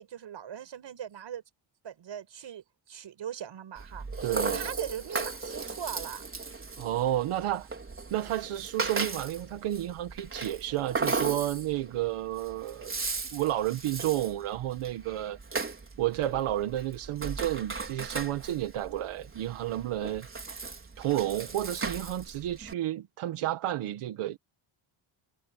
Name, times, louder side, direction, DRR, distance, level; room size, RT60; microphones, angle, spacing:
voice 1, 0.0-1.4 1.8-4.1 4.5-6.2, right 9 dB, 60° right, 6.6 m, -40 dB
Rattle (instrument), 3.8-22.7, right 4 dB, 25° right, 4.8 m, -37 dB
voice 2, 4.2-4.7 6.8-7.7 8.1-12.9 13.3-15.4 16.0-20.3 21.0-24.4, right 13 dB, 90° right, 1.9 m, -31 dB
cardioid pair, 115°, 49 cm